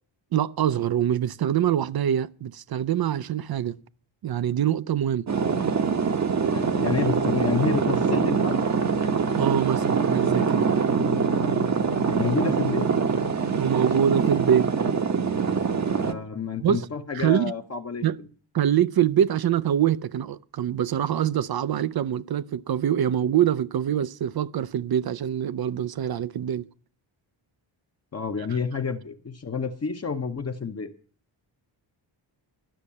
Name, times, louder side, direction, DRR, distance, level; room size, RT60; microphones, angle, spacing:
voice 1, 0.3-3.8 4.2-5.3 9.4-10.7 13.6-14.7 16.6-16.9 17.1-17.5 18.0-18.2 18.5-26.7, right 10 dB, 50° right, 0.5 m, -24 dB
sound 1, 5.3-16.1, right 5 dB, 35° right, 0.9 m, -24 dB
voice 2, 6.5-8.7 12.1-12.9 13.7-14.1 15.7-18.0 28.1-30.9, left 5 dB, 35° left, 0.8 m, -29 dB
11.5 x 6.6 x 8.3 m
wide cardioid pair, 145°, 47 cm